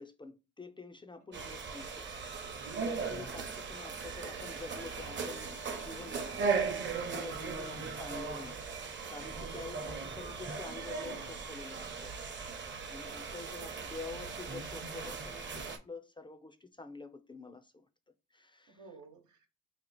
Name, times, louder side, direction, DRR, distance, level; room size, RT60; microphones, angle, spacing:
voice 1, 0.0-2.5 2.8-8.6 9.1-12.1 12.9-17.9 18.3-18.8, left 3 dB, 15° left, 0.4 m, -48 dB
sound 1, 1.3-15.8, right 5 dB, 40° right, 0.8 m, -38 dB
voice 2, 13.3-13.9 18.7-19.5, right 5 dB, 85° right, 1.1 m, -54 dB
2.9 x 2.4 x 4.1 m
cardioid pair, 90°, 30 cm